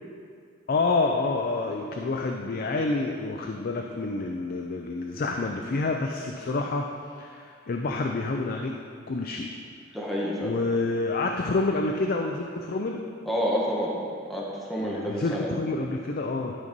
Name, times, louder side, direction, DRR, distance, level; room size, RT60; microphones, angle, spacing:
voice 1, 0.7-6.9 7.2-8.7 9.1-9.5 10.4-13.0 14.8-16.6, left 3 dB, 50° left, 2 dB, 0.5 m, -28 dB
voice 2, 9.9-10.6 13.3-14.0 14.3-15.5, equal, ahead, -6 dB, 1.1 m, -29 dB
11.0 x 4.0 x 5.2 m, 2.3 s
head